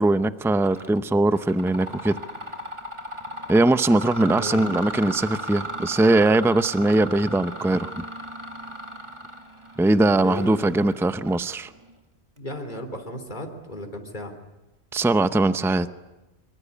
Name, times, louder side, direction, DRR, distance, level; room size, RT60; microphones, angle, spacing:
voice 1, 0.0-2.1 3.5-8.0 9.8-11.7 14.9-16.0, right 2 dB, 5° right, 12 dB, 0.7 m, -21 dB
Mechanisms, 0.6-1.0 1.3-11.9, equal, 25° right, 2.1 m, -36 dB
voice 2, 4.2-4.7 10.2-10.9 12.4-14.3, left 1 dB, 45° left, 5 dB, 3.5 m, -35 dB
25.0 x 24.0 x 8.5 m, 1.0 s
omnidirectional pair, 1.1 m